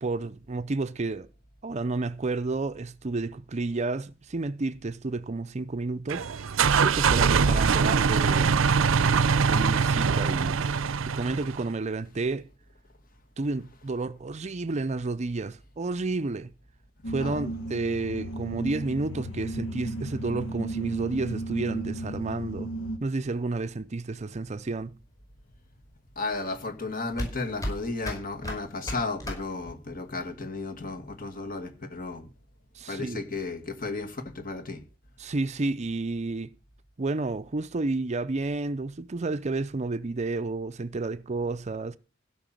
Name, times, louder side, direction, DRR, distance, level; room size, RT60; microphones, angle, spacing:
voice 1, 0.0-1.3 1.6-6.5 6.8-8.7 9.5-10.7 11.0-12.5 13.4-16.5 17.1-22.7 23.0-25.0 32.7-33.2 35.2-36.5 37.0-42.0, right 3 dB, 35° right, 0.5 m, -31 dB
sound 1, 6.1-11.7, right 5 dB, 80° right, 0.6 m, -23 dB
sound 2, 17.0-23.0, right 1 dB, 85° left, 1.2 m, -34 dB
sound 3, 24.1-30.1, equal, 20° left, 5.6 m, -37 dB
voice 2, 26.2-32.3 32.9-34.8, left 3 dB, 45° left, 2.2 m, -34 dB
16.0 x 5.9 x 7.6 m
head